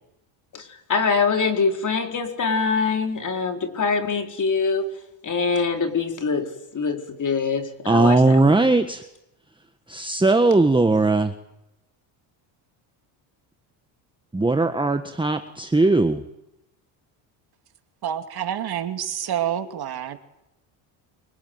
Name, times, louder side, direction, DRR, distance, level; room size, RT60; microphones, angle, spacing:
voice 1, 0.9-4.8 5.2-8.4, left 5 dB, 40° left, 4 dB, 4.6 m, -24 dB
voice 2, 7.9-9.0 9.9-11.3 14.3-16.2, right 2 dB, 10° right, 7 dB, 1.5 m, -19 dB
voice 3, 18.0-20.2, right 10 dB, 50° right, 7 dB, 2.6 m, -28 dB
25.0 x 24.5 x 9.5 m, 0.87 s
cardioid pair, 100°, 48 cm